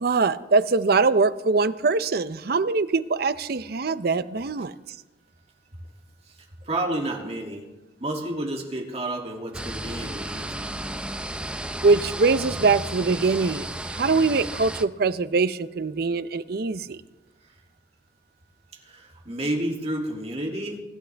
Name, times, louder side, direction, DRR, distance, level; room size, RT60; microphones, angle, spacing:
voice 1, 0.0-4.7 11.8-17.0, right 4 dB, 55° right, 13 dB, 0.6 m, -23 dB
voice 2, 6.6-7.6 8.0-10.7 18.8-20.8, right 1 dB, 35° right, 0 dB, 2.6 m, -30 dB
sound 1, 9.5-14.8, right 1 dB, 5° right, 0.6 m, -33 dB
25.0 x 12.5 x 3.4 m, 1.1 s
head